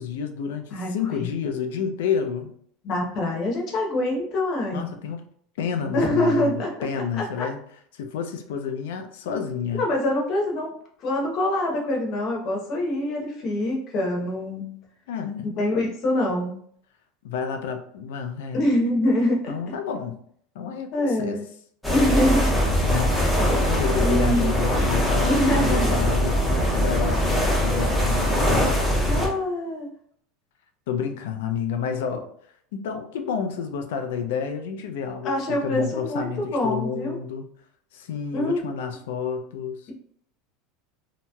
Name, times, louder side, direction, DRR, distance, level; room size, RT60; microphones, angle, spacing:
voice 1, 0.0-2.5 4.7-5.3 5.6-7.6 7.9-9.9 15.1-15.6 17.2-18.6 19.5-20.2 20.5-21.4 22.8-23.2 23.6-26.4 26.7-28.8 30.9-32.3 32.7-37.4 37.9-39.9, left 7 dB, 85° left, 6 dB, 0.5 m, -30 dB
voice 2, 2.8-4.9 5.9-7.5 9.2-9.4 9.7-10.7 11.0-14.8 15.4-16.6 18.5-19.5 20.9-21.4 21.9-22.6 24.0-24.5 25.3-26.0 29.1-29.9 35.2-37.2 38.3-38.6, left 1 dB, 40° left, -1 dB, 0.8 m, -25 dB
sound 1, 21.8-29.3, equal, ahead, 0.7 m, -22 dB
2.9 x 2.8 x 2.2 m, 0.63 s
supercardioid pair, 155°, 0 cm